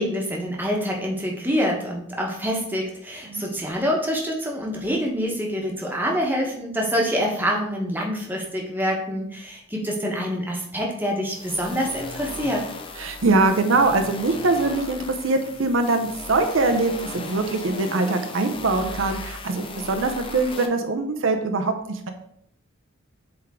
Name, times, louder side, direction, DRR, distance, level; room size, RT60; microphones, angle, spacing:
voice 1, 0.0-12.6, equal, 10° right, -1 dB, 1.1 m, -26 dB
sound 1, 11.3-20.7, left 3 dB, 25° left, 0.5 m, -37 dB
voice 2, 13.0-22.1, right 3 dB, 70° right, 7 dB, 0.6 m, -23 dB
7.8 x 3.6 x 3.6 m, 0.71 s
head